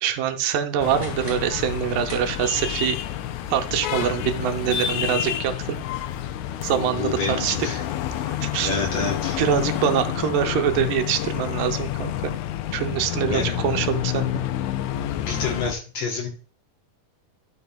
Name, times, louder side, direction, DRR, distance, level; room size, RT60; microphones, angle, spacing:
voice 1, 0.0-3.0 3.5-5.8 6.6-7.6 8.3-8.7 9.4-12.3 12.7-14.4, right 9 dB, 85° right, 6 dB, 2.3 m, -24 dB
sound 1, 0.8-15.7, left 11 dB, 80° left, 1.7 m, -29 dB
sound 2, 0.9-2.9, equal, 15° right, 3.7 m, -43 dB
voice 2, 6.7-7.8 8.6-9.4 13.2-13.6 15.2-16.3, left 4 dB, 60° left, 1 dB, 1.9 m, -28 dB
12.0 x 5.6 x 2.3 m, 0.39 s
omnidirectional pair, 3.8 m